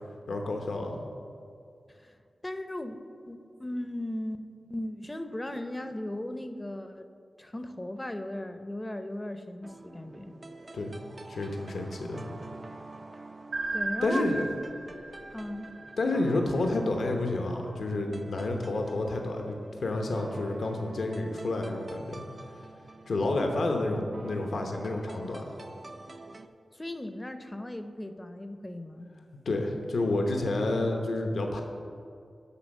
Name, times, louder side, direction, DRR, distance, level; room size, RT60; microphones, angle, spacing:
voice 1, 0.3-1.0 10.7-11.0 11.3-12.2 14.0-14.5 16.0-22.2 23.1-25.6 29.5-31.6, left 2 dB, 75° left, 3 dB, 0.9 m, -29 dB
voice 2, 2.4-3.0 3.3-7.1 7.4-10.4 13.7-14.3 15.3-15.8 26.7-29.1, left 1 dB, 20° left, 8 dB, 0.6 m, -37 dB
sound 1, 9.6-26.5, right 2 dB, 40° right, 0.5 m, -47 dB
sound 2, 13.5-16.4, right 2 dB, 85° right, 1.2 m, -35 dB
11.5 x 4.0 x 6.3 m, 2.4 s
cardioid pair, 60°, 0 cm